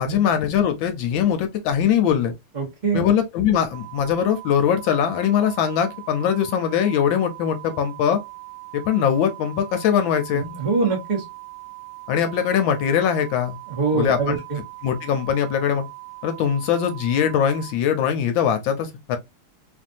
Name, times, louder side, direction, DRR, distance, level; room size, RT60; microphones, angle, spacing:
voice 1, 0.0-2.3 2.9-8.2 8.7-10.5 12.1-13.6 13.9-14.4 14.8-15.8 16.2-19.2, left 8 dB, 75° left, 1.3 m, -21 dB
voice 2, 2.5-3.0 10.3-11.2 13.7-14.6, right 4 dB, 65° right, 0.4 m, -24 dB
sound 1, 3.7-17.7, right 28 dB, 90° right, 1.5 m, -40 dB
3.3 x 2.6 x 2.5 m
omnidirectional pair, 2.4 m